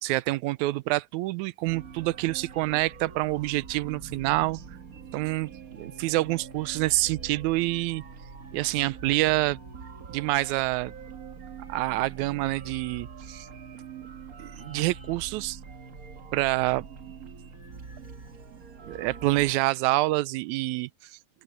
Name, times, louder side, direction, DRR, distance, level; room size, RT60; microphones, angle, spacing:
voice 1, 0.0-4.6 5.1-8.0 8.5-9.6 10.1-10.9 11.7-13.5 14.4-15.6 16.3-16.9 18.8-21.2, right 19 dB, 80° right, 1.9 m, -27 dB
sound 1, 1.7-19.5, right 5 dB, 45° right, 1.1 m, -44 dB
open air
omnidirectional pair, 3.6 m